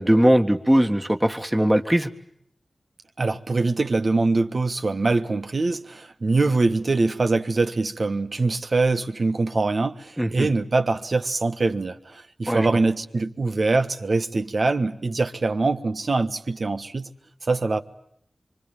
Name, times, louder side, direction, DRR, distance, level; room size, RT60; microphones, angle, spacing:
voice 1, 0.0-2.1 10.2-10.5 12.5-12.7, right 1 dB, 15° right, 1.8 m, -20 dB
voice 2, 3.2-17.1 17.5-17.8, right 3 dB, 65° right, 1.4 m, -23 dB
25.5 x 24.5 x 9.1 m
cardioid pair, 40°, 0 cm